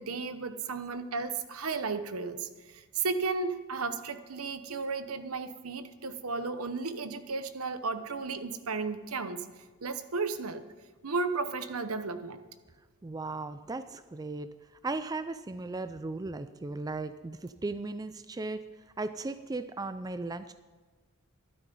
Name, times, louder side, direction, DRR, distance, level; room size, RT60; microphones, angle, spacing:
voice 1, 0.0-9.5 9.8-10.6 11.0-12.4, right 4 dB, 75° right, 10 dB, 0.9 m, -34 dB
voice 2, 13.0-14.5 14.8-18.6 19.0-20.5, right 3 dB, 15° right, 11 dB, 0.3 m, -36 dB
13.0 x 12.0 x 5.4 m, 1.4 s
head